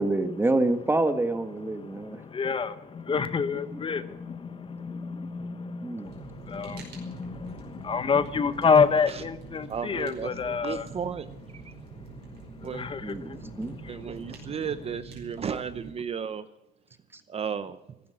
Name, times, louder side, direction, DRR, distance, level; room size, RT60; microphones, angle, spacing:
voice 1, 0.0-2.2 3.7-3.8 5.8-6.1 13.0-13.8, right 2 dB, 15° right, 1.6 m, -27 dB
voice 2, 1.8-10.9 12.6-14.1, left 5 dB, 30° left, 1.0 m, -28 dB
Fire, 6.1-15.9, right 4 dB, 75° right, 5.0 m, -45 dB
voice 3, 9.7-11.3 11.6-11.7 12.6-12.8 13.9-16.5 17.3-17.8, right 7 dB, 35° right, 0.8 m, -34 dB
15.5 x 12.0 x 7.9 m
cardioid pair, 110°, 17 cm